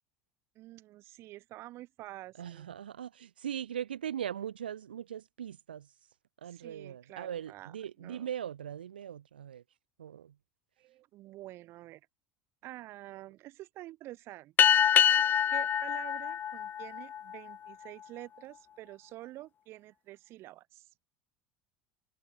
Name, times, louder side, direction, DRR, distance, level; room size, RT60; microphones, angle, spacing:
voice 1, 0.6-2.7 6.5-8.3 10.8-12.0 12.6-14.5 14.9-15.2 15.5-20.9, right 16 dB, 55° right, 4.0 m, -48 dB
voice 2, 2.4-5.9 6.4-9.6 10.0-10.3, right 9 dB, 85° right, 3.3 m, -40 dB
sound 1, 14.6-17.5, left 9 dB, 40° left, 0.7 m, -25 dB
hypercardioid pair, 75°, 5 cm